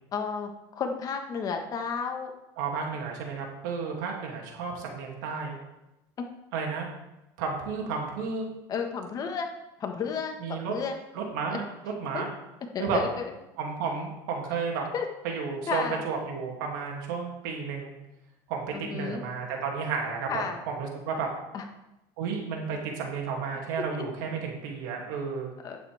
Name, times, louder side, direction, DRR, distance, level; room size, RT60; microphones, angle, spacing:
voice 1, 0.1-2.3 8.7-9.5 9.8-10.9 12.1-12.2 12.7-13.2 14.9-15.1 15.7-16.0 18.7-19.2 20.3-20.6 21.5-21.6 25.6-25.8, left 6 dB, 35° left, 4 dB, 1.5 m, -32 dB
voice 2, 2.6-5.6 6.5-6.9 7.4-8.5 10.4-10.7 11.1-12.3 12.8-13.0 13.6-14.8 15.2-17.9 18.5-21.3 22.2-25.5, right 5 dB, 85° right, 0 dB, 2.6 m, -32 dB
11.0 x 8.9 x 3.6 m, 0.95 s
supercardioid pair, 125°, 10 cm